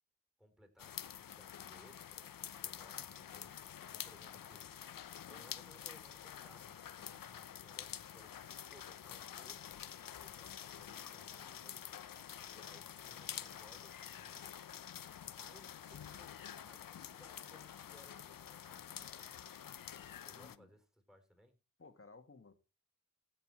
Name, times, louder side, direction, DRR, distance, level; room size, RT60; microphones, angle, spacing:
voice 1, 0.4-2.3 2.6-3.5 3.8-9.8 10.2-11.8 12.1-14.7 15.3-19.3 20.2-21.5, equal, ahead, 4.7 m, -64 dB
sound 1, 0.8-20.6, left 9 dB, 85° left, 0.7 m, -48 dB
voice 2, 20.3-20.7 21.8-22.5, left 4 dB, 40° left, 2.2 m, -58 dB
16.0 x 6.8 x 4.9 m
cardioid pair, 50°, 33 cm